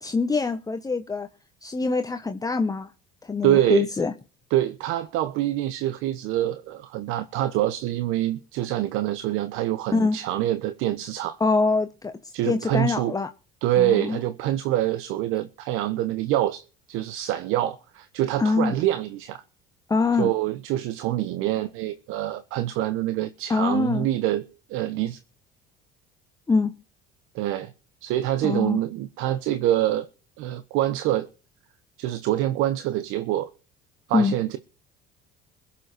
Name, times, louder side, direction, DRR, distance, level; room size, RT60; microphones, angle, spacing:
voice 1, 0.0-1.3 1.6-2.9 3.2-4.1 9.9-10.2 11.4-12.1 12.4-13.3 13.8-14.2 18.4-18.7 19.9-20.3 23.5-24.1 26.5-26.7 28.4-28.8 34.1-34.4, left 4 dB, 15° left, 1.3 m, -24 dB
voice 2, 3.4-3.9 4.5-11.4 12.3-13.1 13.6-19.4 20.2-24.4 24.7-25.2 27.3-27.7 28.0-30.1 30.4-31.3 32.0-33.5 34.1-34.6, right 13 dB, 70° right, 1.2 m, -25 dB
22.0 x 7.5 x 4.5 m
supercardioid pair, 90°, 21 cm